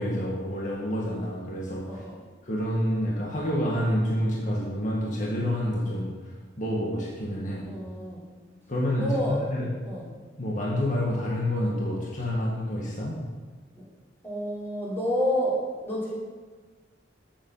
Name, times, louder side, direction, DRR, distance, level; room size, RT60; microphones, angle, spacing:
voice 1, 0.0-2.0 2.4-6.1 6.6-7.7 8.7-9.7 10.4-13.2, equal, 45° left, -4 dB, 2.0 m, -28 dB
voice 2, 1.9-2.2 7.7-8.2 8.9-9.5 9.8-10.1 13.8-13.9 14.2-16.2, equal, 15° left, -7 dB, 4.1 m, -29 dB
14.0 x 7.5 x 5.8 m, 1.4 s
head